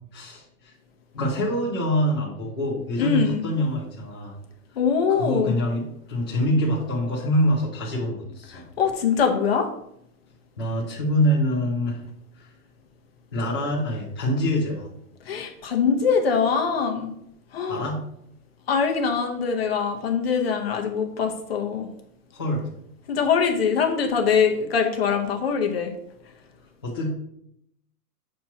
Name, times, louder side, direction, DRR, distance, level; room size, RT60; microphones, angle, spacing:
voice 1, 0.1-0.7 1.1-4.4 5.1-5.8 6.1-8.6 10.6-12.0 12.4-12.5 13.3-14.9 17.7-18.0 22.3-22.7 26.8-27.1, equal, 15° left, -8 dB, 0.5 m, -25 dB
voice 2, 3.0-3.4 4.8-5.5 8.5-9.7 15.3-17.1 17.5-17.8 18.7-21.9 23.1-25.9, left 6 dB, 40° left, 3 dB, 0.9 m, -23 dB
7.5 x 2.9 x 5.7 m, 0.75 s
hypercardioid pair, 175°, 46 cm